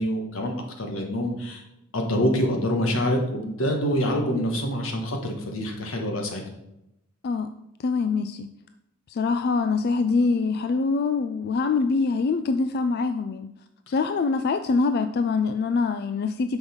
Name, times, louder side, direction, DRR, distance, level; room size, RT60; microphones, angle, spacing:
voice 1, 0.0-1.6 1.9-6.4, equal, 90° left, 2 dB, 1.5 m, -26 dB
voice 2, 7.8-8.5 9.1-13.5 13.9-16.6, left 4 dB, 50° left, 9 dB, 0.3 m, -24 dB
6.3 x 5.2 x 5.1 m, 0.85 s
head